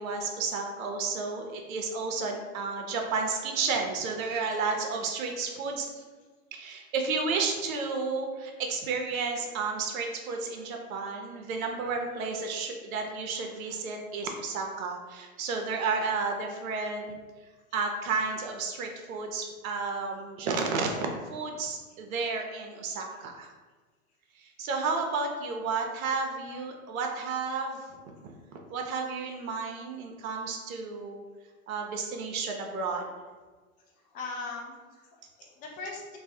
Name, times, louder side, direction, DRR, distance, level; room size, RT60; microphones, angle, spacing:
voice 1, 0.0-5.9 6.5-17.2 17.7-23.5 24.4-31.2 31.7-33.1, right 4 dB, 75° right, 2 dB, 0.5 m, -32 dB
voice 2, 34.1-36.2, left 3 dB, 20° left, -2 dB, 0.3 m, -40 dB
2.2 x 2.0 x 2.7 m, 1.4 s
hypercardioid pair, 100°, 42 cm